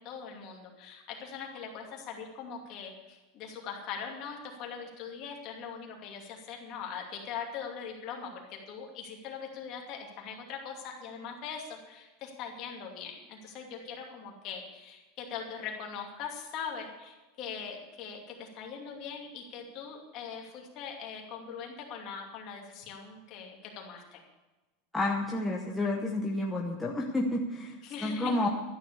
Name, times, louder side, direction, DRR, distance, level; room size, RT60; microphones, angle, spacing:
voice 1, 0.0-24.2 27.8-28.3, left 6 dB, 35° left, 0 dB, 2.6 m, -41 dB
voice 2, 24.9-27.7 28.0-28.5, left 2 dB, 5° left, -3 dB, 0.9 m, -30 dB
12.5 x 9.9 x 7.0 m, 1.1 s
supercardioid pair, 175°, 0 cm